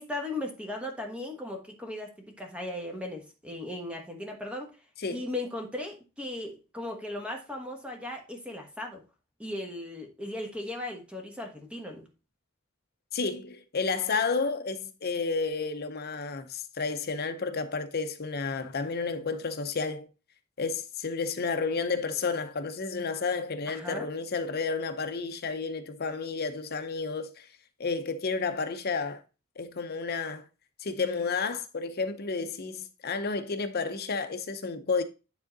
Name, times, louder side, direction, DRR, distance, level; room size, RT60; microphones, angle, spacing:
voice 1, 0.0-4.7 5.1-9.0 9.4-12.0 23.7-24.1, left 1 dB, 5° right, 1.3 m, -37 dB
voice 2, 13.1-20.1 20.6-27.5 27.8-29.2 29.6-30.5 30.8-35.0, left 4 dB, 50° left, 0.7 m, -31 dB
9.6 x 3.8 x 3.9 m
head